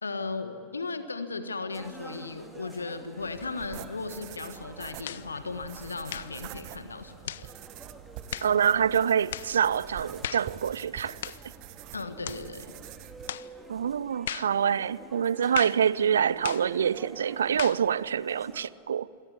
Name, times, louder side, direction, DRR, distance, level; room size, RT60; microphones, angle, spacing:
voice 1, 0.0-7.5 11.9-12.7, left 3 dB, 75° left, 1.4 m, -36 dB
sound 1, 1.7-18.7, right 2 dB, 10° right, 2.7 m, -50 dB
sound 2, 3.2-13.3, right 14 dB, 45° right, 1.0 m, -46 dB
sound 3, 5.0-5.3 6.1-6.4 7.3-7.5 8.3-8.6 9.3-9.5 10.2-10.5 11.2-11.5 12.2-12.5 13.3-13.5 14.3-14.6 15.5-15.8 16.4-16.7 17.6-17.9, left 11 dB, 60° left, 0.5 m, -36 dB
voice 2, 8.4-11.3 13.7-19.1, right 8 dB, 65° right, 0.5 m, -26 dB
27.0 x 18.0 x 9.6 m
figure-of-eight pair, 90°, 0 cm